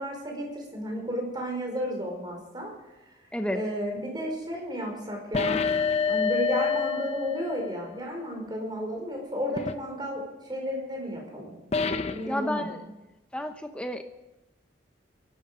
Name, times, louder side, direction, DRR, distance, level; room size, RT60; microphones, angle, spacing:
voice 1, 0.0-2.7 3.5-5.8 6.1-10.2 10.5-11.5 12.1-12.8, equal, 20° right, 1 dB, 4.8 m, -33 dB
voice 2, 3.3-3.6 12.3-12.8 13.3-14.0, left 1 dB, 5° left, 5 dB, 0.8 m, -31 dB
sound 1, 5.3-7.9 9.6-9.8 11.7-12.3, left 5 dB, 35° left, 0.6 m, -27 dB
23.5 x 12.5 x 5.0 m, 0.98 s
head